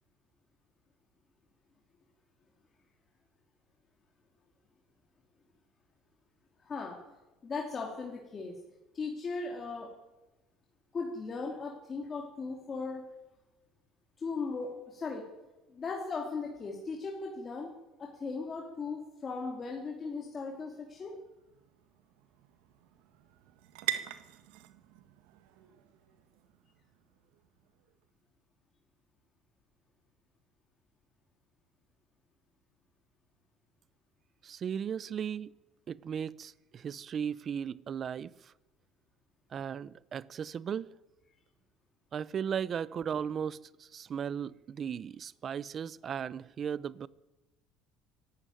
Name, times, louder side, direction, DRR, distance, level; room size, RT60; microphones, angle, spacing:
voice 1, 6.6-7.0 7.4-8.5 8.9-9.9 10.9-13.0 14.2-15.2 15.7-17.7 18.0-21.1, left 4 dB, 25° left, 2.8 m, -37 dB
sound 1, 20.3-28.1, right 13 dB, 85° right, 1.6 m, -44 dB
voice 2, 34.4-35.5 35.9-38.5 39.5-40.9 42.1-47.1, right 8 dB, 35° right, 0.7 m, -36 dB
24.0 x 12.5 x 9.3 m
cardioid pair, 140°, 0 cm